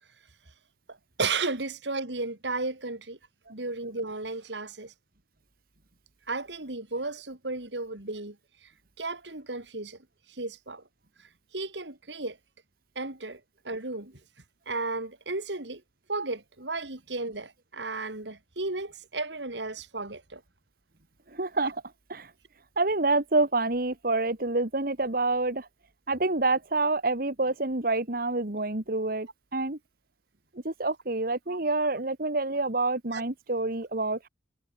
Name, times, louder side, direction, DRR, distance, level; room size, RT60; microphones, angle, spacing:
voice 1, 0.9-3.2 3.5-4.9 6.3-8.4 9.0-10.0 10.3-10.8 11.5-12.4 13.0-14.1 14.7-15.8 16.1-20.4 31.5-31.6 33.1-33.2, right 3 dB, 90° right, 3.6 m, -34 dB
voice 2, 21.3-21.8 22.1-22.3 22.8-25.7 26.1-29.8 30.6-34.3, right 2 dB, 55° right, 2.0 m, -27 dB
head